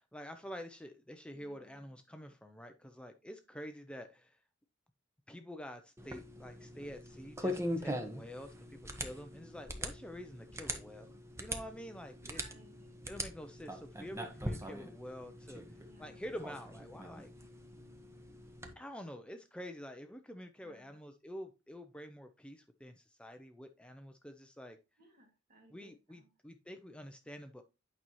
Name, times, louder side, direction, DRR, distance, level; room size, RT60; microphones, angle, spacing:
voice 1, 0.0-4.4 5.3-12.4 13.1-15.6 16.0-17.3 18.8-24.8 25.7-27.6, equal, 5° left, 6 dB, 0.5 m, -48 dB
voice 2, 1.3-2.0 12.2-13.0 15.8-16.3 20.6-21.0 25.0-26.3, right 2 dB, 45° right, 3 dB, 2.1 m, -62 dB
sound 1, 6.0-18.7, equal, 15° right, 0.9 m, -42 dB
8.8 x 5.4 x 3.0 m, 0.27 s
head